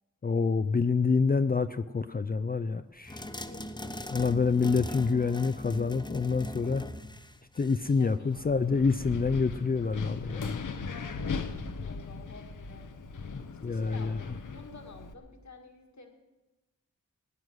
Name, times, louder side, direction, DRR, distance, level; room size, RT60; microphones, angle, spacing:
voice 1, 0.2-3.2 4.1-6.8 7.6-10.6 13.3-14.2, left 4 dB, 30° left, 10 dB, 0.5 m, -27 dB
sound 1, 3.1-8.1, left 1 dB, 15° left, 1.0 m, -40 dB
voice 2, 3.2-4.0 7.8-8.5 10.9-12.9 13.6-16.1, left 3 dB, 60° left, 4 dB, 2.0 m, -51 dB
Wind, 8.3-15.1, left 4 dB, 80° left, 1.0 m, -38 dB
18.0 x 9.4 x 6.3 m, 1.1 s
cardioid pair, 55°, 31 cm